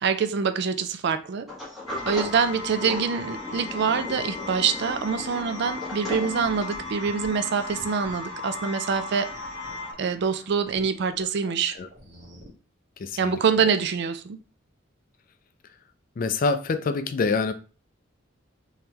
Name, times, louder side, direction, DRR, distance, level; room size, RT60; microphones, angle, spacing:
voice 1, 0.0-1.5 2.1-9.3 10.0-11.8 13.2-14.4, right 6 dB, 55° right, 0.4 m, -25 dB
Sliding door, 1.5-6.9, left 2 dB, ahead, 1.3 m, -37 dB
sound 1, 1.9-9.9, left 3 dB, 20° left, 1.2 m, -36 dB
sound 2, 5.8-8.4 9.1-11.2 11.6-12.5, equal, 35° right, 1.5 m, -48 dB
voice 2, 13.0-13.4 16.2-17.5, left 4 dB, 45° left, 0.4 m, -25 dB
3.6 x 3.1 x 2.9 m
head